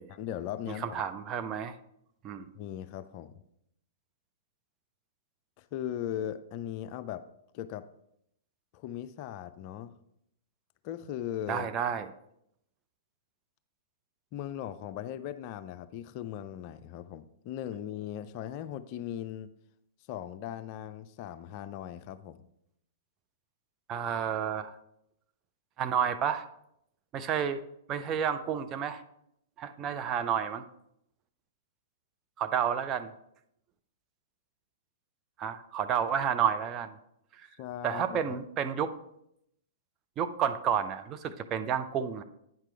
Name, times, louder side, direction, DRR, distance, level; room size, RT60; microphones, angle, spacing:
voice 1, 0.1-1.0 2.6-3.4 5.6-7.2 7.5-7.9 8.7-9.9 10.8-11.7 14.3-19.5 20.1-22.5 37.6-38.2, left 10 dB, 40° left, 12 dB, 0.4 m, -38 dB
voice 2, 0.8-1.7 2.2-2.5 11.5-12.1 23.9-24.8 25.8-26.5 27.1-27.6 27.9-29.0 29.6-30.6 32.4-33.1 35.4-36.9 37.4-37.5 37.8-38.9 40.2-42.2, right 8 dB, 25° right, 8 dB, 0.5 m, -30 dB
9.0 x 5.9 x 3.3 m, 0.76 s
figure-of-eight pair, 110°, 0 cm